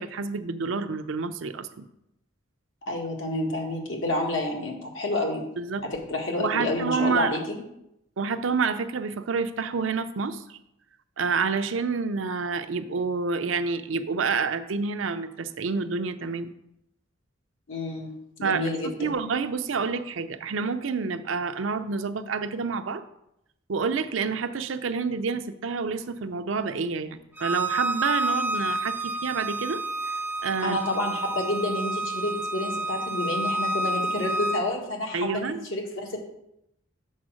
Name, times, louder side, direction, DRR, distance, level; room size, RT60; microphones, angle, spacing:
voice 1, 0.0-1.9 5.6-5.8 6.4-7.4 8.2-10.6 11.2-16.5 18.4-18.7 19.0-23.0 23.7-30.2 30.4-30.8 35.1-35.7, right 5 dB, 90° right, 10 dB, 0.6 m, -28 dB
voice 2, 2.9-5.4 6.1-7.4 17.7-18.1 18.4-19.1 30.6-36.2, left 1 dB, 85° left, 0 dB, 1.8 m, -29 dB
Bowed string instrument, 27.4-34.6, right 2 dB, 10° right, 0.4 m, -29 dB
7.3 x 4.5 x 6.3 m, 0.81 s
head